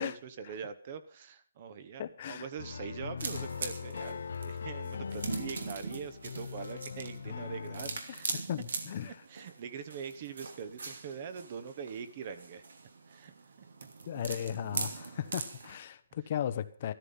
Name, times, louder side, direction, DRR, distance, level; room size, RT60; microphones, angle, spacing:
voice 1, 0.0-8.5 9.0-12.6 13.1-13.3 13.6-13.7, right 7 dB, 30° right, 12 dB, 1.1 m, -43 dB
voice 2, 2.0-2.5 8.1-9.2 14.1-16.9, left 10 dB, 35° left, 11 dB, 0.9 m, -36 dB
sound 1, 2.6-8.0, left 6 dB, 70° left, 0.6 m, -40 dB
sound 2, 3.2-15.8, right 4 dB, 75° right, 2.8 m, -41 dB
14.0 x 13.5 x 5.6 m, 0.44 s
hypercardioid pair, 175°, 0 cm